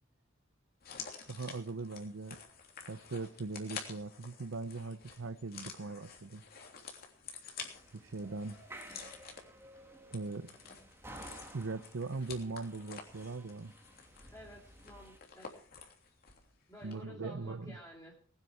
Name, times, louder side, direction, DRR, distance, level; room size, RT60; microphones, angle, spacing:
sound 1, 0.8-16.5 16.8-16.9, left 6 dB, 50° left, 3.3 m, -50 dB
voice 1, 1.3-2.4 2.9-6.4 7.9-8.6 10.1-10.5 11.5-13.7 16.8-17.8, right 3 dB, 80° right, 11 dB, 0.7 m, -40 dB
sound 2, 7.7-15.2, right 1 dB, 10° right, 2.1 m, -54 dB
voice 2, 14.3-15.6 16.7-18.2, equal, 15° left, -3 dB, 2.6 m, -52 dB
20.5 x 9.8 x 4.9 m, 0.43 s
head